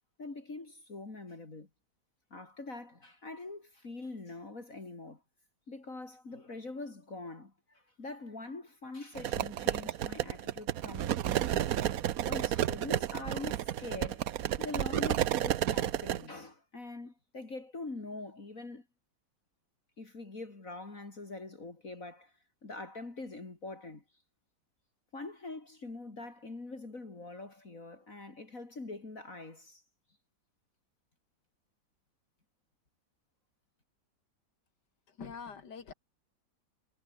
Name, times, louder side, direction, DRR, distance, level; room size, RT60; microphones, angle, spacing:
voice 1, 0.2-1.7 2.3-5.2 5.7-11.8 12.2-14.3 14.6-18.9 20.0-22.3 22.6-24.0 25.1-29.8, left 3 dB, 45° left, 3.9 m, -44 dB
sound 1, 9.1-16.2, right 11 dB, 60° right, 1.1 m, -31 dB
voice 2, 35.1-35.9, left 6 dB, 65° left, 2.9 m, -44 dB
omnidirectional pair, 1.9 m